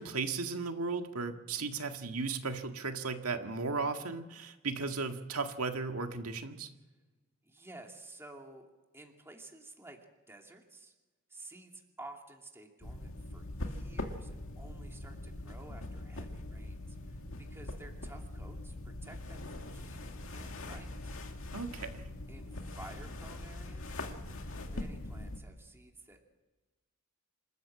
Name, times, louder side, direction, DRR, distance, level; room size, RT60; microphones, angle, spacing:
voice 1, 0.0-6.7 21.5-22.1, right 4 dB, 90° right, 5 dB, 1.8 m, -36 dB
voice 2, 7.4-8.7 8.9-10.0 10.3-10.9 11.3-20.0 20.3-21.3 22.3-24.0 24.5-26.4, right 2 dB, 10° right, 2 dB, 2.5 m, -53 dB
sound 1, 12.8-25.4, left 1 dB, 65° left, 2.2 m, -42 dB
27.0 x 13.5 x 7.7 m, 1.2 s
head